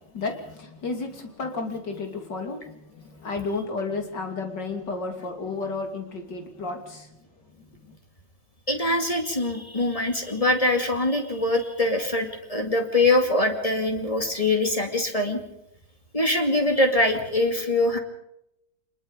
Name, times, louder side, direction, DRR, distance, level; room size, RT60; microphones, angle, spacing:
voice 1, 0.1-7.1 7.9-8.0, left 3 dB, 65° left, 4 dB, 3.5 m, -32 dB
voice 2, 8.7-15.4 16.1-18.0, left 2 dB, 20° left, 4 dB, 2.4 m, -23 dB
24.5 x 21.5 x 5.2 m, 0.82 s
omnidirectional pair, 2.1 m